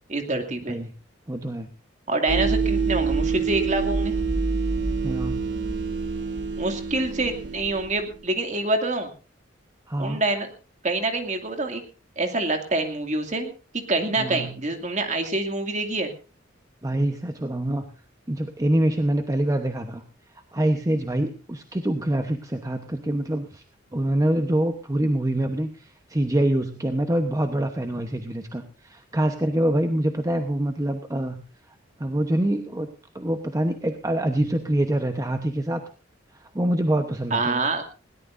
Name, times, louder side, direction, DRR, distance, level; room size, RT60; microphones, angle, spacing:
voice 1, 0.1-0.8 2.1-4.1 6.6-9.1 10.0-10.5 10.8-11.8 12.2-13.5 13.9-16.1 37.3-37.8, right 2 dB, 40° right, 5 dB, 2.4 m, -26 dB
voice 2, 1.3-1.7 5.0-5.5 9.9-10.2 14.2-14.5 16.8-17.8 18.3-20.0 20.5-23.6 23.9-31.4 32.0-32.9 33.1-35.8 36.3-37.6, right 1 dB, 15° right, 6 dB, 1.0 m, -25 dB
sound 1, 2.3-8.1, right 4 dB, 60° right, 2.4 m, -26 dB
21.0 x 17.5 x 2.6 m, 0.35 s
head